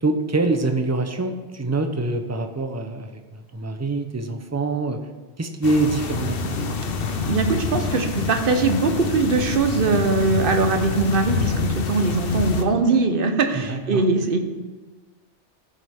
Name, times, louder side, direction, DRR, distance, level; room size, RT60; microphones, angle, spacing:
voice 1, 0.0-5.0 5.4-6.6 13.5-14.0, right 2 dB, 20° right, 6 dB, 0.5 m, -25 dB
sound 1, 5.6-12.6, left 4 dB, 55° left, 0.9 m, -26 dB
voice 2, 7.3-14.4, right 3 dB, 50° right, 5 dB, 1.1 m, -21 dB
15.0 x 6.3 x 3.6 m, 1.3 s
omnidirectional pair, 1.2 m